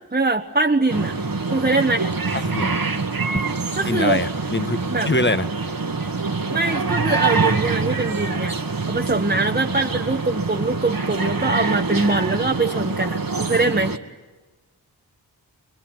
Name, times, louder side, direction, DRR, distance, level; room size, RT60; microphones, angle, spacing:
voice 1, 0.1-1.1 1.5-2.1 3.8-4.2 4.9-5.1 6.5-8.6 8.9-13.9, right 2 dB, 20° right, 3 dB, 1.4 m, -22 dB
sound 1, 0.9-14.0, right 4 dB, 55° right, 1.8 m, -25 dB
voice 2, 2.3-2.7 3.8-4.8 5.0-5.5, left 2 dB, 25° left, 12 dB, 1.5 m, -23 dB
27.0 x 22.5 x 9.4 m, 1.2 s
wide cardioid pair, 50°, 41 cm